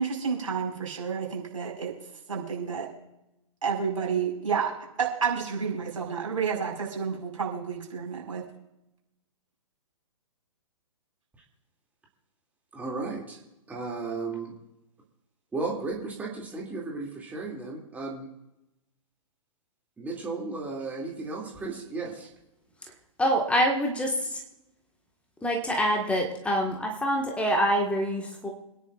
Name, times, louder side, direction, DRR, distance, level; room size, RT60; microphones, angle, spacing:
voice 1, 0.0-1.9 2.3-2.9 3.6-8.4, right 6 dB, 70° right, -1 dB, 5.1 m, -30 dB
voice 2, 12.7-13.4 13.7-14.5 15.5-18.3 20.0-22.3, right 3 dB, 10° right, -2 dB, 2.5 m, -34 dB
voice 3, 23.2-24.4 25.4-28.5, equal, 5° left, 1 dB, 1.6 m, -26 dB
27.0 x 10.5 x 2.5 m, 0.90 s
figure-of-eight pair, 120°, 18 cm